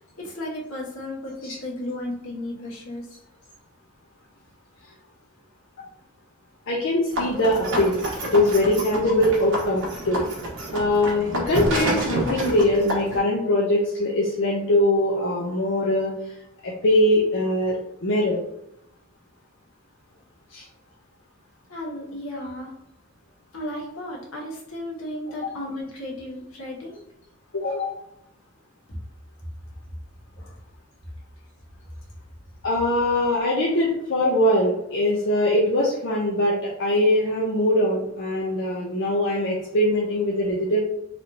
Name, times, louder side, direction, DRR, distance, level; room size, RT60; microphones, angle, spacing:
voice 1, 0.2-3.1 21.7-22.7 23.5-27.0 28.9-29.0 30.4-30.5, left 1 dB, 85° left, -3 dB, 1.5 m, -34 dB
voice 2, 6.7-8.0 8.3-10.3 10.7-16.1 16.6-17.8 18.0-18.4 20.5-20.6 27.5-28.0 32.6-40.8, left 1 dB, 65° left, -4 dB, 0.8 m, -22 dB
sound 1, 7.1-13.2, right 1 dB, 60° right, 1.5 m, -29 dB
4.2 x 3.4 x 2.9 m, 0.79 s
head